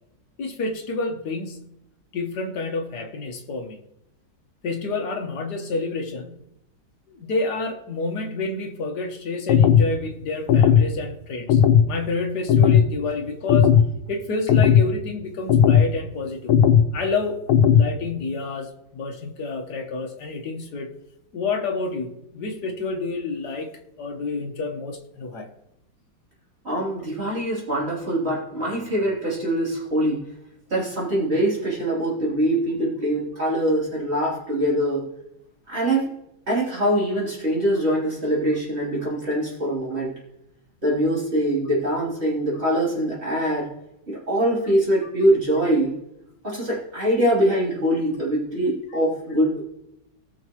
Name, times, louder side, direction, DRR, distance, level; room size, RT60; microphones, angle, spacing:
voice 1, 0.4-1.7 2.1-3.8 4.6-6.4 7.2-11.6 11.9-13.7 14.1-16.5 16.9-17.4 17.7-20.9 21.3-23.7 24.0-25.5, left 3 dB, 55° left, 2 dB, 1.7 m, -29 dB
sound 1, 9.5-9.9 10.5-10.9 11.5-11.9 12.5-12.9 13.5-13.9 14.5-14.9 15.5-15.9 16.5-16.9 17.5-17.9, left 8 dB, 90° left, 1.6 m, -15 dB
voice 2, 26.6-30.2 30.7-35.1 35.7-36.2 36.5-40.1 40.8-43.7 44.1-45.9 46.4-49.6, right 1 dB, 30° right, -6 dB, 3.5 m, -23 dB
18.5 x 6.5 x 3.1 m, 0.82 s
omnidirectional pair, 2.3 m